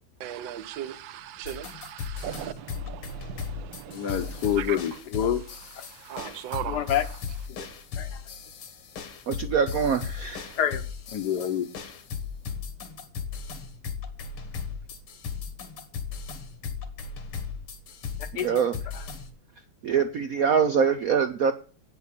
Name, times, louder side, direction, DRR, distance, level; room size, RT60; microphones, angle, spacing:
voice 1, 0.2-4.8 5.5-7.0, right 11 dB, 65° right, 1.5 m, -38 dB
sound 1, 1.4-19.3, left 6 dB, 80° left, 2.4 m, -37 dB
voice 2, 3.9-5.4 5.8-5.9 6.7-7.0 7.6-7.7 8.0-8.2 10.6-10.8 11.1-11.7 18.3-18.6 18.9-19.0, left 9 dB, 60° left, 1.2 m, -27 dB
voice 3, 9.3-10.5 18.4-18.8 19.8-21.5, right 6 dB, 80° right, 0.7 m, -24 dB
8.7 x 6.8 x 8.1 m
omnidirectional pair, 2.4 m